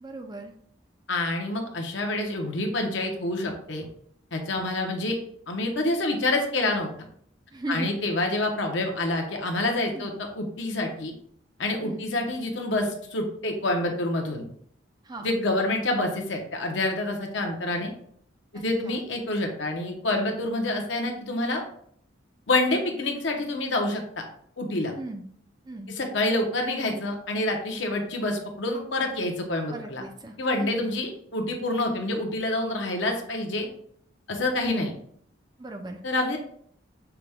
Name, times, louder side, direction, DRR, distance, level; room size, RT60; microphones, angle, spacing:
voice 1, 0.0-0.5 7.5-7.9 9.9-10.2 11.8-12.1 15.1-15.3 18.5-19.0 25.0-25.3 25.7-26.0 29.7-30.8 35.6-36.0, right 2 dB, 20° right, 4 dB, 0.3 m, -37 dB
voice 2, 1.1-3.9 4.3-5.2 5.5-6.9 7.7-11.1 11.6-14.4 15.2-17.9 18.5-21.6 22.5-24.0 24.6-24.9 25.9-30.0 30.4-33.7 34.3-34.9 36.0-36.4, left 2 dB, 65° left, 2 dB, 0.8 m, -27 dB
5.8 x 2.2 x 3.4 m, 0.64 s
head